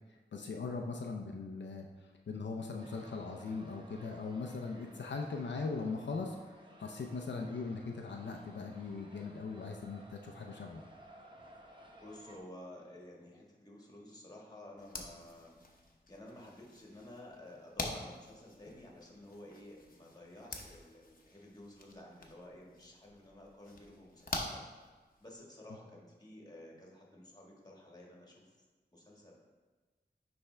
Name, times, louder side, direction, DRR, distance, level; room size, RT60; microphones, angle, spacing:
voice 1, 0.3-10.8, left 4 dB, 85° left, 2 dB, 0.5 m, -40 dB
sound 1, 2.8-12.4, right 1 dB, 25° right, 0.9 m, -57 dB
voice 2, 12.0-15.6 16.1-24.7 25.2-28.5 28.9-29.3, left 1 dB, 20° left, -2 dB, 1.6 m, -52 dB
sound 2, 14.8-25.4, left 2 dB, 50° left, 0.8 m, -46 dB
9.7 x 3.5 x 3.3 m, 1.3 s
wide cardioid pair, 65°, 18 cm